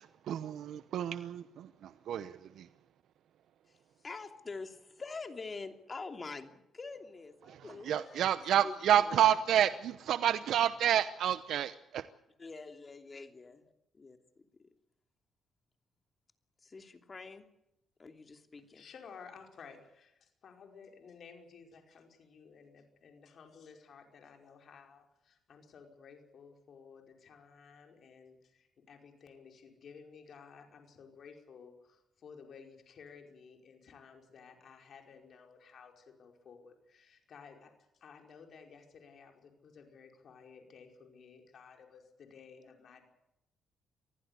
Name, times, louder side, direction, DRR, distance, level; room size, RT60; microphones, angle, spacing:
voice 1, 0.0-2.7 7.5-7.6 7.8-12.0, right 10 dB, 75° right, 12 dB, 0.9 m, -29 dB
voice 2, 4.0-9.3 12.4-13.6 13.9-14.2 14.6-14.7 16.6-17.4 18.0-18.9, left 4 dB, 30° left, 6 dB, 2.9 m, -46 dB
voice 3, 18.7-43.1, left 6 dB, 60° left, 3 dB, 5.1 m, -55 dB
24.0 x 15.5 x 8.4 m, 0.85 s
cardioid pair, 90°, 0 cm